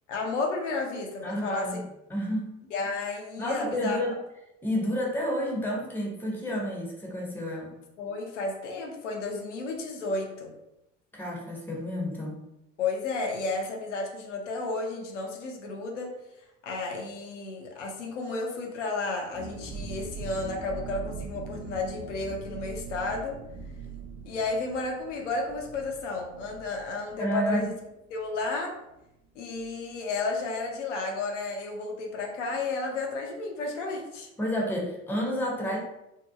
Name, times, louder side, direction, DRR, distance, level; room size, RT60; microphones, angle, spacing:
voice 1, 0.1-1.7 2.7-4.0 8.0-10.5 12.8-16.2 16.6-23.4 24.3-27.7 28.1-28.7 29.3-34.3, left 3 dB, 70° left, 1 dB, 0.6 m, -32 dB
voice 2, 1.2-2.5 3.4-4.2 4.6-7.7 11.1-12.4 27.2-27.7 34.4-35.8, equal, 5° left, -1 dB, 0.6 m, -30 dB
sound 1, 19.3-28.7 29.0-29.1 29.4-29.7, right 5 dB, 35° right, 0.4 m, -42 dB
2.7 x 2.1 x 2.4 m, 0.88 s
figure-of-eight pair, 60°, 38 cm